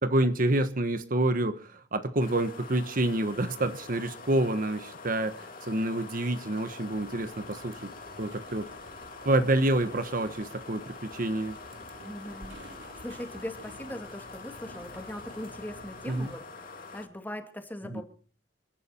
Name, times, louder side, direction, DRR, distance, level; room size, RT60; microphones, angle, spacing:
voice 1, 0.0-7.9 8.2-8.7 9.2-11.5 16.1-16.3 17.9-18.0, right 1 dB, 50° right, 1.1 m, -28 dB
sound 1, 2.2-17.1, left 4 dB, 50° left, 2.9 m, -45 dB
sound 2, 6.9-16.4, right 1 dB, 85° right, 3.5 m, -51 dB
voice 2, 12.0-12.6 13.0-18.0, left 1 dB, 10° left, 2.4 m, -40 dB
29.0 x 11.5 x 4.3 m
head